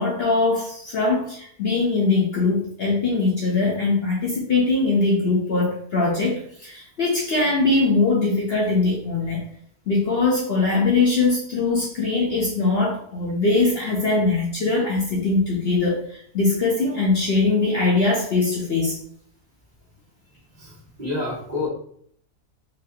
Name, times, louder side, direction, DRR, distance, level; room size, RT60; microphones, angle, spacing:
voice 1, 0.0-9.4 9.9-19.0, left 3 dB, 55° left, -4 dB, 0.8 m, -21 dB
voice 2, 20.5-21.7, left 2 dB, 30° right, -7 dB, 1.3 m, -29 dB
4.0 x 2.6 x 2.8 m, 0.62 s
omnidirectional pair, 1.5 m